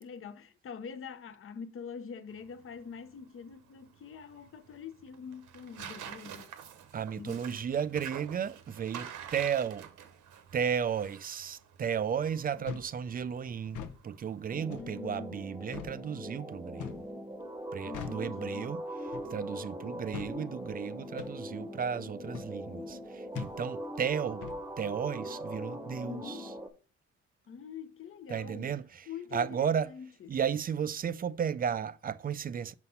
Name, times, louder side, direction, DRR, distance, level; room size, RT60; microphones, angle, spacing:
voice 1, 0.0-6.5 7.2-7.4 12.6-12.7 14.8-15.4 17.8-18.8 26.0-26.5 27.5-28.7 29.1-30.3, left 6 dB, 45° left, 0.7 m, -45 dB
Tearing, 2.3-14.5, right 8 dB, 75° right, 1.0 m, -49 dB
voice 2, 6.9-9.9 10.5-17.0 17.7-18.8 19.3-24.5 24.8-26.5 28.3-29.9 30.3-32.7, right 7 dB, 30° right, 0.4 m, -34 dB
sound 1, 12.6-12.9 13.6-14.0 14.7-14.9 15.7-16.0 16.8-17.1 17.9-18.3 19.1-19.4 20.1-20.4 21.2-21.4 22.3-22.5 23.3-23.6 24.4-24.6, left 8 dB, 80° left, 0.8 m, -41 dB
sound 2, 14.5-26.7, equal, 10° right, 0.9 m, -41 dB
5.4 x 4.1 x 5.5 m
cardioid pair, 90°, 30 cm